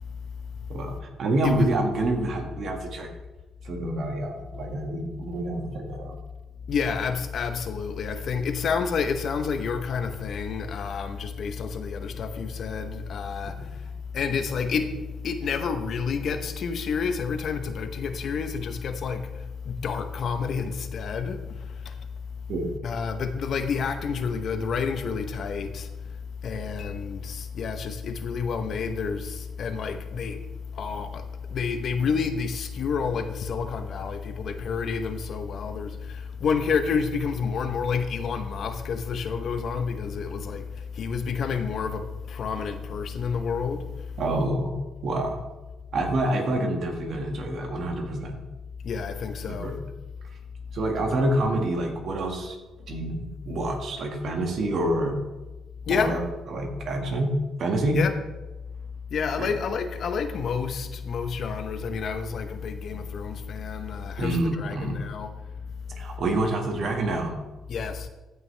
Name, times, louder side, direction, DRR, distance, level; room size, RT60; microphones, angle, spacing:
voice 1, 0.7-3.1 3.6-6.2 22.5-22.7 44.2-44.7 45.0-45.4 45.9-48.4 49.6-49.7 50.7-52.6 52.9-55.2 55.9-56.2 56.5-57.3 57.6-58.0 59.4-59.5 64.2-65.0 66.0-67.3, right 1 dB, 60° right, 1.8 m, -27 dB
voice 2, 6.7-22.5 22.8-44.2 48.8-49.7 55.9-56.2 57.9-58.1 59.1-65.3 65.9-66.0 67.7-68.1, left 5 dB, 60° left, 0.9 m, -29 dB
14.0 x 5.8 x 3.3 m
cardioid pair, 90°, 0 cm